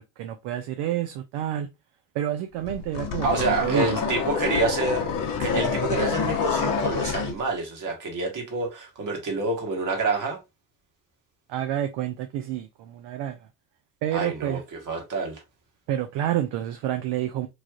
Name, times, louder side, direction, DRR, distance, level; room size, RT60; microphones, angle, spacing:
voice 1, 0.0-1.7 2.1-4.0 11.5-13.4 14.0-14.6 15.9-17.5, right 11 dB, 55° right, 0.5 m, -29 dB
sound 1, 2.7-7.4, left 6 dB, 40° left, 0.8 m, -27 dB
voice 2, 3.2-5.1 5.4-10.4 14.1-15.4, right 3 dB, 40° right, 1.3 m, -27 dB
3.2 x 2.4 x 2.3 m
supercardioid pair, 85°, 50 cm